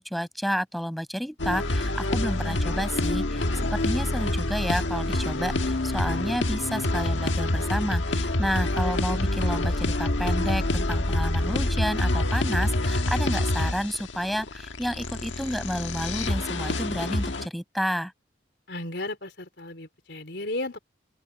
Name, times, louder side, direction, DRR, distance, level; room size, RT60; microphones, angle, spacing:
voice 1, 0.0-18.1, equal, ahead, 5.7 m, -30 dB
sound 1, 1.4-17.5, left 1 dB, 85° left, 1.5 m, -26 dB
voice 2, 18.7-20.8, left 2 dB, 65° left, 3.9 m, -34 dB
open air
head